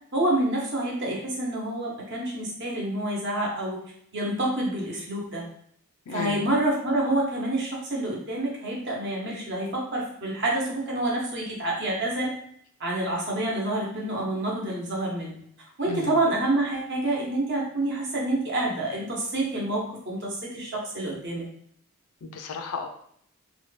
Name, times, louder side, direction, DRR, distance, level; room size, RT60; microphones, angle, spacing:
voice 1, 0.1-3.8 4.1-5.5 6.1-12.3 12.8-15.3 15.8-21.5, right 1 dB, 55° right, -3 dB, 0.9 m, -28 dB
voice 2, 6.1-6.5 15.8-16.2 22.2-22.9, left 3 dB, 85° left, 6 dB, 0.4 m, -34 dB
2.8 x 2.2 x 3.2 m, 0.66 s
head